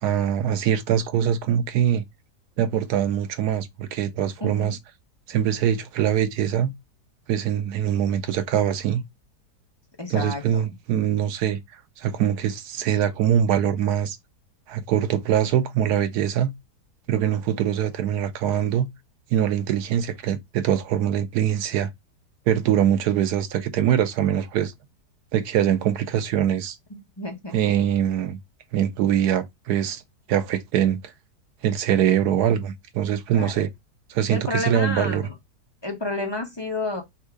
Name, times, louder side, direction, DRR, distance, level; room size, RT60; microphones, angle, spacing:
voice 1, 0.0-2.0 2.6-4.8 5.3-6.7 7.3-9.0 10.1-11.6 12.0-14.2 14.7-16.5 17.1-18.9 19.3-21.9 22.5-24.7 25.3-26.8 27.5-28.4 28.7-30.0 30.3-31.0 31.6-33.7 34.1-35.3, right 10 dB, 70° right, 1.2 m, -23 dB
voice 2, 4.4-4.7 10.0-10.6 27.2-27.6 33.3-33.5 34.3-35.3 35.8-37.0, left 2 dB, 20° left, 0.8 m, -30 dB
3.6 x 2.7 x 4.7 m
omnidirectional pair, 1.8 m